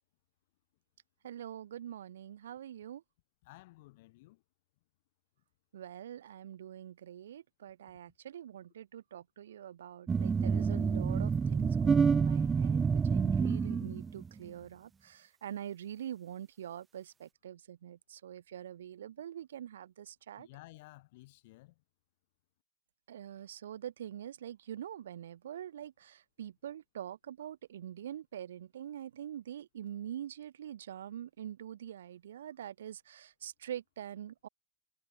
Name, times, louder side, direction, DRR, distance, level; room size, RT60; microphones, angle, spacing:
voice 1, 1.2-3.0 5.7-20.5 23.1-34.5, right 10 dB, 60° right, 3.7 m, -44 dB
voice 2, 3.4-4.4 20.4-21.8, left 20 dB, 50° left, 2.3 m, -55 dB
sound 1, 10.1-14.3, right 5 dB, 15° right, 0.3 m, -28 dB
figure-of-eight pair, 90°, 0 cm